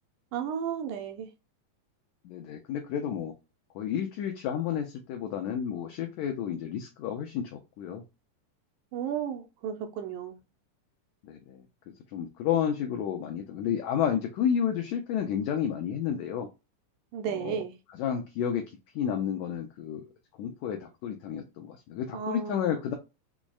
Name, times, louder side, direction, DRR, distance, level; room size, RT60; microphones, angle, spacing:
voice 1, 0.3-1.3 8.9-10.4 17.1-17.7 22.1-22.7, right 8 dB, 80° right, 2.0 m, -33 dB
voice 2, 2.2-3.3 3.7-8.0 11.3-16.5 17.3-17.5 18.0-20.0 20.4-22.9, left 8 dB, 80° left, 1.6 m, -31 dB
6.0 x 2.1 x 2.3 m
omnidirectional pair, 3.7 m